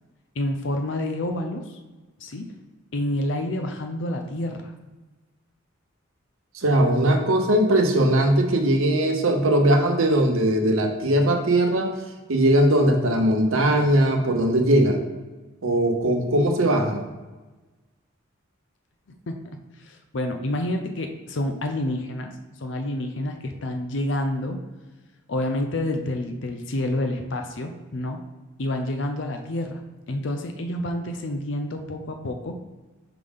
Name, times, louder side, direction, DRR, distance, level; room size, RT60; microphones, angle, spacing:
voice 1, 0.4-1.8 2.2-2.5 2.9-4.7 19.3-19.4 19.8-22.3 22.6-24.6 25.3-28.2 28.6-29.8 30.1-32.6, left 1 dB, 60° left, 5 dB, 0.6 m, -28 dB
voice 2, 6.5-12.0 12.3-15.0 15.6-17.1, right 1 dB, 85° right, 3 dB, 0.9 m, -20 dB
5.8 x 5.0 x 3.6 m, 1.2 s
head